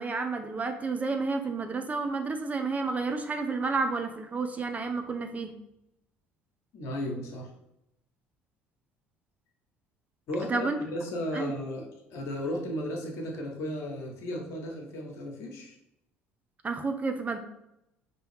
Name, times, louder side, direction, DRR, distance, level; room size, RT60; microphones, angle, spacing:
voice 1, 0.0-5.5 10.5-10.8 11.3-11.5 16.6-17.4, right 4 dB, 25° right, 6 dB, 0.5 m, -30 dB
voice 2, 6.7-7.5 10.3-11.9 12.1-15.7, left 1 dB, 55° left, 1 dB, 1.1 m, -35 dB
5.4 x 2.9 x 3.3 m, 0.84 s
figure-of-eight pair, 55°, 6 cm